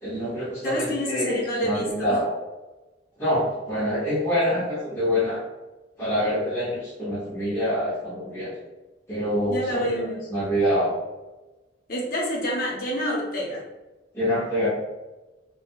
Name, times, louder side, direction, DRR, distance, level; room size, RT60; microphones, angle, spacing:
voice 1, 0.0-2.3 3.2-5.4 6.0-8.6 9.1-11.0 14.1-14.7, equal, 15° left, -9 dB, 0.6 m, -26 dB
voice 2, 0.6-2.2 9.5-10.3 11.9-13.6, equal, 50° left, -3 dB, 0.8 m, -28 dB
2.5 x 2.1 x 2.9 m, 1.1 s
head